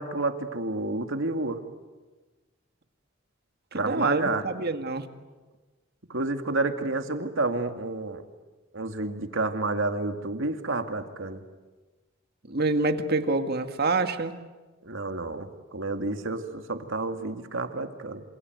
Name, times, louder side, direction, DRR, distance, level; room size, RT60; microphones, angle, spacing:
voice 1, 0.0-1.6 3.7-4.4 6.1-8.2 8.7-11.4 14.8-18.2, right 2 dB, 75° right, 6 dB, 2.2 m, -30 dB
voice 2, 3.7-5.1 12.4-14.4, right 3 dB, 55° right, 7 dB, 2.0 m, -26 dB
27.5 x 27.0 x 8.0 m, 1.2 s
head